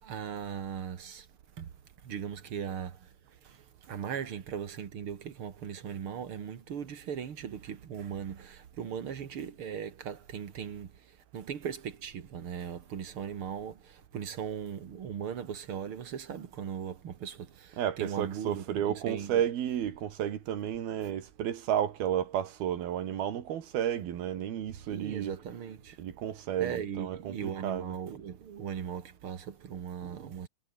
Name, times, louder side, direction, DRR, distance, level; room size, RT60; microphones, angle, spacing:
voice 1, 0.0-1.3 1.6-1.7 2.0-3.1 3.4-19.4 24.9-26.0 26.6-30.5, right 8 dB, 45° right, 2.0 m, -38 dB
voice 2, 17.8-25.3 26.0-27.9, right 10 dB, 75° right, 4.1 m, -32 dB
omnidirectional pair, 4.4 m